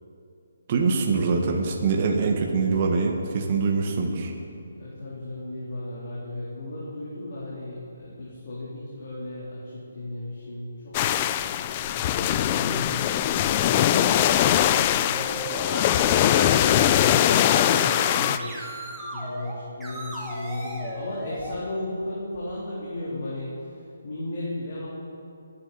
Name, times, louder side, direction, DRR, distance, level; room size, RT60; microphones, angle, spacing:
voice 1, 0.7-4.3, right 4 dB, 30° right, 1 dB, 1.3 m, -24 dB
voice 2, 4.7-11.0 11.8-14.1 14.4-15.4 15.9-18.7 19.1-24.9, left 1 dB, 45° left, -7 dB, 3.4 m, -36 dB
sound 1, 10.9-18.4, left 11 dB, 20° left, 0.3 m, -21 dB
sound 2, 15.1-19.6 19.8-21.6, equal, ahead, 1.7 m, -36 dB
23.5 x 9.9 x 4.1 m, 2.6 s
hypercardioid pair, 170°, 0 cm